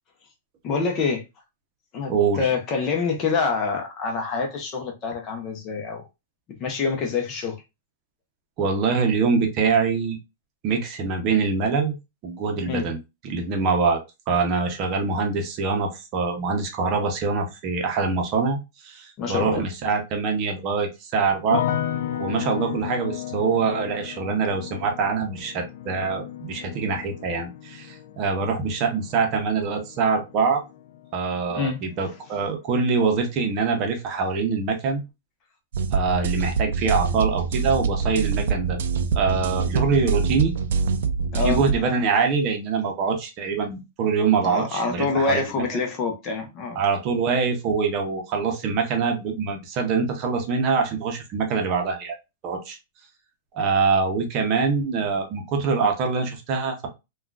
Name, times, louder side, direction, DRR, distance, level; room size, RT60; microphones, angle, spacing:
voice 1, 0.6-1.2 1.9-6.0 6.6-7.6 12.7-12.9 19.2-19.6 31.5-31.8 41.3-41.6 44.4-46.8, left 4 dB, 30° left, 0.7 m, -26 dB
voice 2, 2.1-2.5 8.6-10.2 10.6-11.9 12.2-13.0 13.2-21.6 22.1-30.6 31.1-35.0 35.9-38.8 39.1-40.5 41.4-45.6 46.7-52.2 52.4-52.8 53.5-56.9, right 5 dB, 35° right, 0.7 m, -24 dB
sound 1, 21.5-32.6 32.8-33.6, left 11 dB, 70° left, 0.4 m, -34 dB
sound 2, 35.7-41.8, right 5 dB, 75° right, 0.4 m, -25 dB
3.5 x 2.3 x 2.3 m
supercardioid pair, 150°, 0 cm